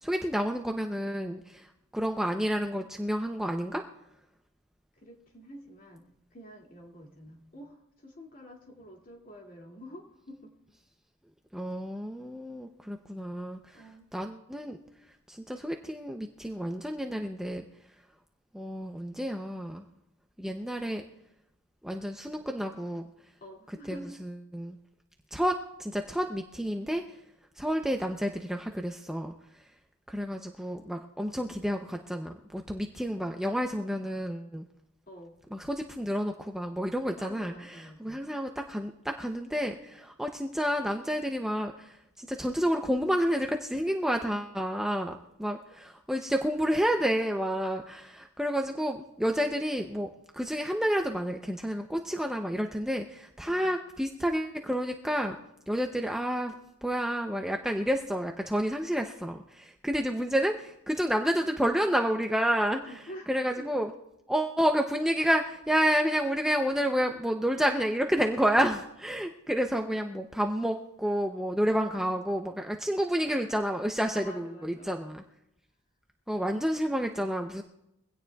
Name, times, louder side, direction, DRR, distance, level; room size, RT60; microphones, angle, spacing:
voice 1, 0.0-3.8 11.5-13.8 14.1-14.8 15.3-17.6 18.5-19.8 20.4-21.0 21.8-23.1 23.9-24.8 25.3-27.0 27.6-29.3 30.1-34.7 35.5-55.4 55.7-56.5 56.8-63.0 63.3-63.9 64.3-75.2 76.3-77.6, equal, ahead, 3 dB, 0.6 m, -30 dB
voice 2, 5.0-10.6 13.7-14.1 23.4-24.2 31.2-31.4 35.1-35.4 37.2-38.2 44.1-44.2 53.4-53.8 62.7-63.7 71.9-72.0 74.1-75.2 76.4-76.6, equal, 40° left, 0 dB, 2.3 m, -48 dB
23.0 x 16.5 x 2.3 m, 0.85 s
head